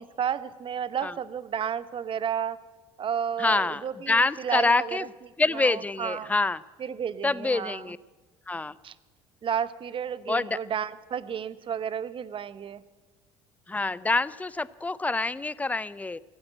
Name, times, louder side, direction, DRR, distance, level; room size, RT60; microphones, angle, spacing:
voice 1, 0.0-2.6 3.0-5.0 5.5-6.3 6.8-7.9 8.8-8.9 9.4-12.8, right 8 dB, 35° right, 16 dB, 0.7 m, -32 dB
voice 2, 3.4-5.1 5.4-6.6 7.2-8.0 8.5-8.8 10.3-10.6 13.7-16.2, left 3 dB, 10° left, 19 dB, 0.5 m, -26 dB
15.0 x 8.8 x 8.9 m, 1.3 s
hypercardioid pair, 65°, 14 cm